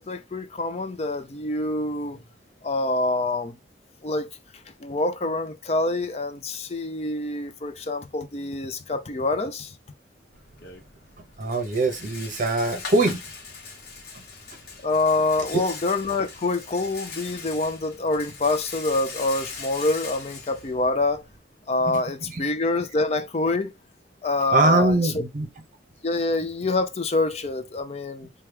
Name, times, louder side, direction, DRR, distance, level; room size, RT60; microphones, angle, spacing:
voice 1, 0.0-2.2 2.6-3.6 4.0-4.3 4.8-9.7 14.8-21.2 21.7-23.7 24.2-25.2 26.0-28.3, left 2 dB, 35° left, 0.5 m, -26 dB
Rattle, 10.3-21.4, left 4 dB, 55° left, 1.0 m, -41 dB
voice 2, 11.4-13.2 15.5-15.6 21.9-22.4 24.5-25.5, right 2 dB, 45° right, 0.8 m, -22 dB
4.6 x 2.3 x 3.2 m
head